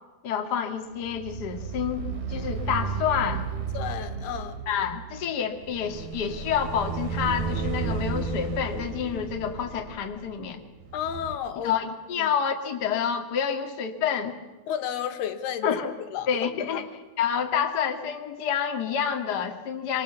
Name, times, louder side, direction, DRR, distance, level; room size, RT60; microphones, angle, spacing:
voice 1, 0.2-3.5 4.6-10.6 11.6-14.4 15.6-15.9 16.3-16.9 17.2-20.0, left 7 dB, 35° left, 4 dB, 1.9 m, -28 dB
sound 1, 1.0-11.4, right 5 dB, 70° right, 4.1 m, -33 dB
voice 2, 3.7-4.6 10.9-11.7 12.2-12.3 14.7-15.7 16.1-16.3 16.7-16.9, left 9 dB, 80° left, 8 dB, 3.5 m, -32 dB
26.5 x 26.0 x 7.0 m, 1.2 s
omnidirectional pair, 4.6 m